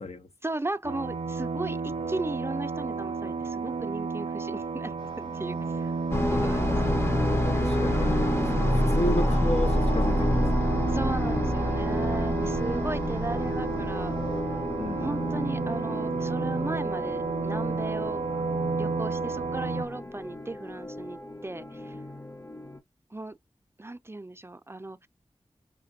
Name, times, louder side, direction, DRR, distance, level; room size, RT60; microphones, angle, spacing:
voice 1, 0.4-5.9 6.3-7.1 7.6-7.8 10.9-14.1 14.9-18.2 18.8-22.0 23.1-23.4 23.8-25.1, right 2 dB, 25° right, 0.4 m, -36 dB
sound 1, 0.8-19.9, right 4 dB, 75° right, 0.5 m, -32 dB
sound 2, 5.0-14.4, left 2 dB, 45° left, 1.0 m, -51 dB
sound 3, 6.1-22.8, left 1 dB, 25° left, 0.6 m, -29 dB
voice 2, 7.4-10.9 14.8-15.1, left 1 dB, 80° left, 0.7 m, -33 dB
5.7 x 2.2 x 2.6 m
wide cardioid pair, 65°, 11 cm